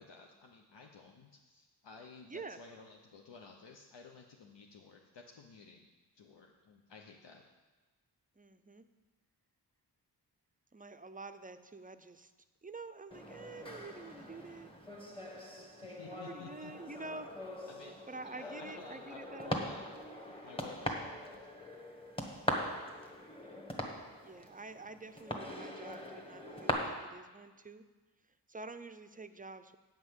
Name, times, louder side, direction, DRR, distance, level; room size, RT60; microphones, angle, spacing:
voice 1, 0.0-5.9 6.1-7.5 15.8-16.9 17.7-18.0 18.2-19.9 20.3-21.5, left 5 dB, 80° left, 1 dB, 0.8 m, -54 dB
voice 2, 2.3-2.6 8.4-8.9 10.7-12.3 12.6-14.7 16.1-17.3 18.1-19.6 24.2-27.8 28.5-29.8, right 3 dB, 20° right, 10 dB, 0.4 m, -48 dB
sound 1, 13.1-26.7, left 1 dB, 15° left, 1.3 m, -42 dB
8.9 x 5.5 x 7.9 m, 1.3 s
wide cardioid pair, 115°, 42 cm